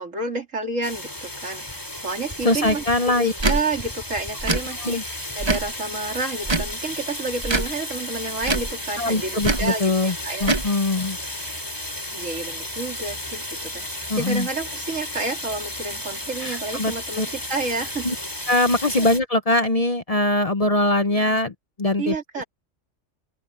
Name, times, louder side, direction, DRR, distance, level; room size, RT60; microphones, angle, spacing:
voice 1, 0.0-2.8 3.1-10.5 12.1-18.1 19.0-19.1 22.0-22.4, right 3 dB, 80° right, 3.5 m, -30 dB
sound 1, 0.8-19.2, left 1 dB, 20° left, 3.5 m, -33 dB
voice 2, 2.4-3.3 4.8-5.0 9.0-11.2 14.1-14.5 16.4-17.3 18.0-18.1 18.5-21.5 21.8-22.1, left 2 dB, 35° left, 0.8 m, -22 dB
Tick / Tick-tock, 3.4-3.6 4.4-4.6 5.4-5.7 6.4-6.7 7.4-7.7 8.4-8.7 9.4-9.7 10.4-10.7, right 2 dB, 25° right, 1.0 m, -23 dB
open air
omnidirectional pair, 1.3 m